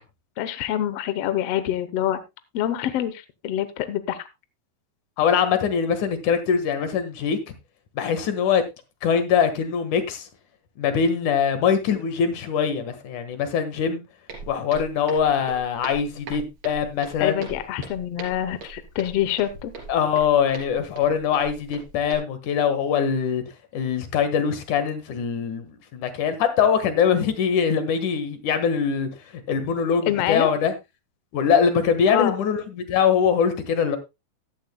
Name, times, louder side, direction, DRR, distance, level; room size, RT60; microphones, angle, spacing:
voice 1, 0.4-2.2 2.5-4.3 17.2-19.7 30.1-30.5 32.1-32.4, left 11 dB, 80° left, 1.4 m, -26 dB
voice 2, 5.2-7.5 8.0-8.6 9.0-10.3 10.8-14.0 14.5-17.4 19.9-23.4 23.7-29.1 29.5-30.7 31.3-34.0, left 7 dB, 65° left, 2.8 m, -22 dB
Walk footsteps, 14.3-22.1, right 4 dB, 50° right, 4.4 m, -41 dB
15.0 x 11.5 x 2.2 m
omnidirectional pair, 4.1 m